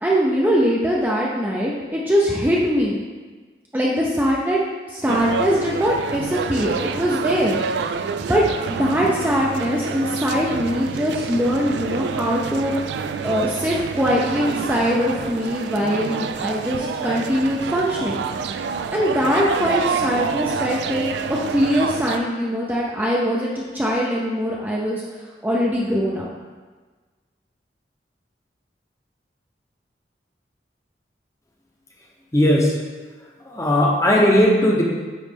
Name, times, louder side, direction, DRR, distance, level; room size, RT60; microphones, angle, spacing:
voice 1, 0.0-3.0 3.7-4.6 4.9-7.9 8.3-8.4 8.7-13.0 13.2-18.2 18.9-21.1 21.5-26.3, equal, 10° right, -4 dB, 0.5 m, -22 dB
sound 1, 5.1-22.2, right 5 dB, 80° right, 0.3 m, -28 dB
voice 2, 32.3-32.7 33.4-34.8, equal, 15° left, -1 dB, 0.8 m, -17 dB
9.0 x 3.1 x 3.5 m, 1.4 s
head